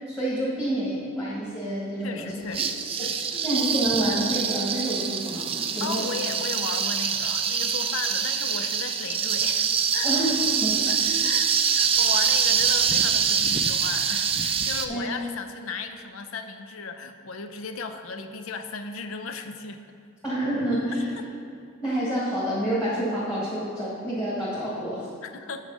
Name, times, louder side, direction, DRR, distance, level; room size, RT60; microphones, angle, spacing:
voice 1, 0.1-2.3 3.4-6.0 10.0-11.2 14.9-15.0 20.2-21.0 21.8-25.1, right 1 dB, 15° left, -9 dB, 1.7 m, -28 dB
voice 2, 2.0-3.5 5.8-9.7 9.9-10.1 10.9-19.8 25.2-25.6, left 4 dB, 80° left, 8 dB, 0.5 m, -36 dB
sound 1, 2.5-14.9, right 7 dB, 30° right, 0.4 m, -25 dB
7.4 x 6.3 x 5.4 m, 2.5 s
head